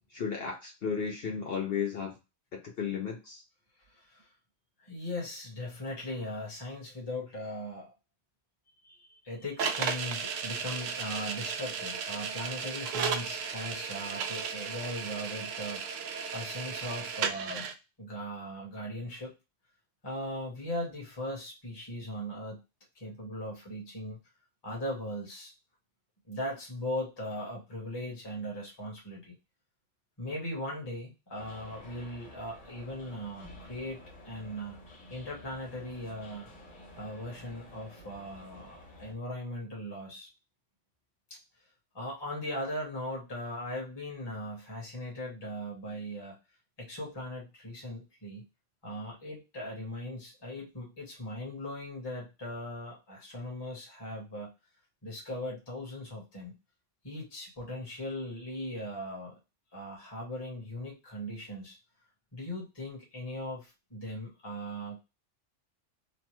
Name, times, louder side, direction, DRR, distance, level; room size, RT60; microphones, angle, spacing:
voice 1, 0.1-2.1 2.5-3.4, left 6 dB, 60° left, 1 dB, 0.7 m, -34 dB
voice 2, 3.8-4.3 4.8-7.9 8.8-15.8 16.3-17.7 18.0-19.3 20.0-22.6 22.9-24.2 24.6-25.5 26.3-29.3 30.2-34.8 35.1-36.5 37.0-40.3 41.9-46.4 46.8-48.4 48.8-54.5 55.0-56.6 57.0-59.3 59.7-61.8 62.3-65.0, left 1 dB, 20° left, -3 dB, 1.1 m, -39 dB
sound 1, 9.6-17.7, right 6 dB, 85° right, 0.9 m, -35 dB
sound 2, 31.3-39.1, left 1 dB, 75° left, 1.4 m, -51 dB
3.1 x 2.1 x 2.9 m, 0.26 s
omnidirectional pair, 1.3 m